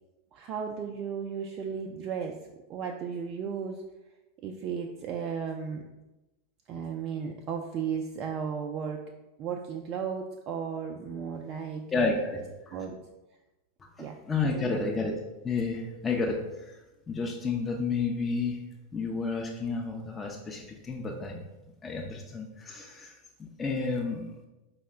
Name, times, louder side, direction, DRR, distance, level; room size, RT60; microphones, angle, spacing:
voice 1, 0.3-2.4 2.7-3.8 4.4-5.9 6.7-9.0 9.4-11.9 12.7-13.0 14.0-14.2 14.5-15.0, right 6 dB, 45° right, 3 dB, 0.3 m, -35 dB
voice 2, 11.9-12.8 13.8-15.1 15.4-16.8 17.1-18.6 18.9-21.4 21.8-24.4, left 4 dB, 20° left, 0 dB, 0.5 m, -31 dB
4.7 x 2.1 x 3.4 m, 1.0 s
figure-of-eight pair, 85°, 0 cm